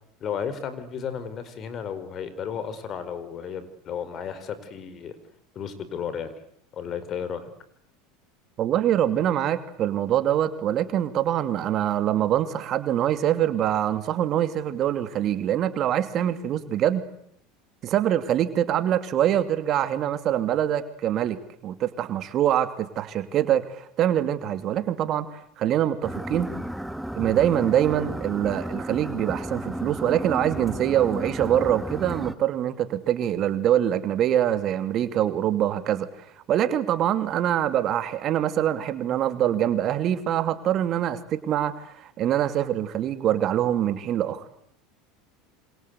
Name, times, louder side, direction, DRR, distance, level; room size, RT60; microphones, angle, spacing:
voice 1, 0.2-5.2 5.5-6.3 6.7-7.5, left 7 dB, 40° left, 13 dB, 4.7 m, -33 dB
voice 2, 8.6-17.0 17.8-26.5 27.1-36.1 36.5-44.5, right 11 dB, 45° right, 10 dB, 2.7 m, -24 dB
sound 1, 26.0-32.3, right 1 dB, 5° right, 1.4 m, -33 dB
27.0 x 26.5 x 8.3 m, 0.71 s
hypercardioid pair, 95°, 0 cm